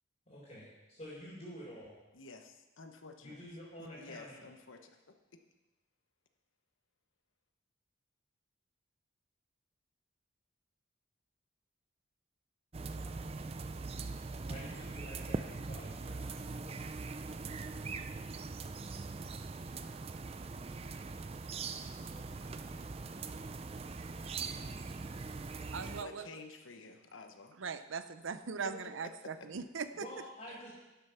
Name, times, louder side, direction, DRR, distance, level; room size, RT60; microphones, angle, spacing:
voice 1, 0.3-1.9 3.2-4.4 12.9-13.3 14.5-16.8 30.0-30.7, equal, 35° left, -10 dB, 4.1 m, -49 dB
voice 2, 2.1-3.4 3.9-5.0 5.3-5.4 25.8-27.6 28.6-28.9, left 3 dB, 75° left, 6 dB, 1.0 m, -51 dB
sound 1, 12.7-26.0, right 4 dB, 30° right, 0.4 m, -41 dB
voice 3, 25.7-26.3 27.6-30.1, right 5 dB, 75° right, 12 dB, 0.6 m, -40 dB
11.5 x 7.9 x 5.7 m, 1.1 s
head